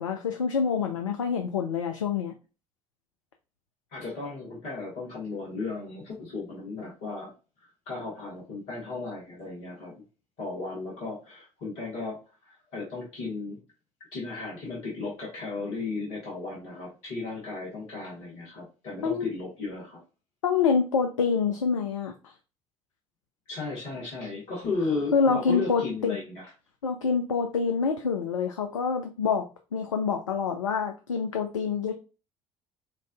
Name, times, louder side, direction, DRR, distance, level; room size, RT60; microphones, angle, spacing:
voice 1, 0.0-2.3 19.0-19.3 20.4-22.3 25.1-26.2 26.8-29.4 29.7-31.9, left 6 dB, 80° left, 5 dB, 0.4 m, -26 dB
voice 2, 3.9-7.3 7.9-10.0 10.4-13.6 14.1-20.0 23.5-26.5, left 3 dB, 60° left, -5 dB, 1.5 m, -35 dB
5.1 x 2.6 x 2.3 m, 0.32 s
figure-of-eight pair, 55°, 16 cm